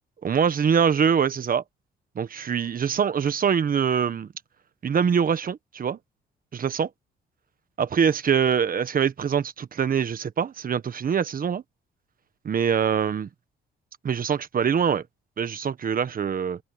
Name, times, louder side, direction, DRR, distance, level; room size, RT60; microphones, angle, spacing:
voice 1, 0.2-1.6 2.1-4.3 4.8-6.0 6.5-6.9 7.8-11.6 12.4-13.3 14.0-15.0 15.4-16.6, right 7 dB, 45° right, 1.4 m, -24 dB
cardioid pair, 90°, 20 cm